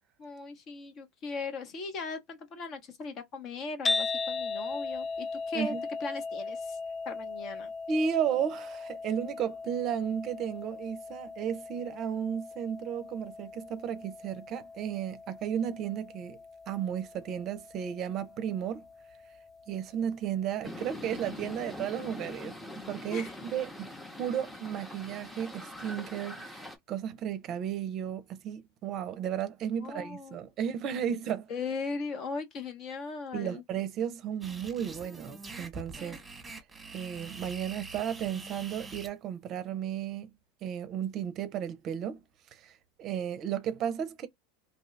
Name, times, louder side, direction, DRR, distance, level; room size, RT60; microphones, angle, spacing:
voice 1, 0.2-5.7 6.0-6.8 7.0-7.7 23.1-23.3 29.8-30.4 30.9-31.0 31.5-33.6 36.0-36.2, left 4 dB, 45° left, 0.9 m, -38 dB
sound 1, 3.8-20.1, left 3 dB, 25° left, 0.3 m, -38 dB
voice 2, 7.9-16.4 16.7-18.8 19.7-23.9 24.2-31.5 33.3-36.2 36.9-40.3 40.6-42.2 42.5-44.3, right 8 dB, 45° right, 0.5 m, -34 dB
sound 2, 20.6-26.8, left 1 dB, 10° left, 0.8 m, -43 dB
sound 3, 34.4-39.1, right 3 dB, 10° right, 1.2 m, -44 dB
2.7 x 2.2 x 3.2 m
hypercardioid pair, 95°, 0 cm